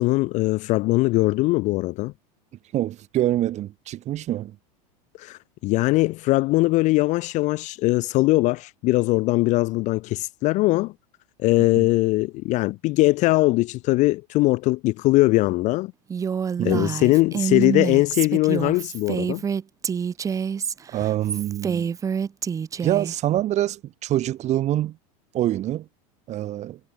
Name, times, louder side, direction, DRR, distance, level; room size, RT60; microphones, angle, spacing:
voice 1, 0.0-2.1 5.2-10.9 11.4-15.9 16.6-19.4, left 20 dB, 40° left, 0.4 m, -21 dB
voice 2, 2.7-4.6 11.8-11.9 16.6-16.9 20.9-21.9 22.8-25.0 25.3-25.9 26.3-26.8, right 13 dB, 35° right, 2.0 m, -25 dB
Female speech woman speaking, 16.1-23.1, right 7 dB, 15° right, 0.6 m, -27 dB
supercardioid pair, 140°, 20 cm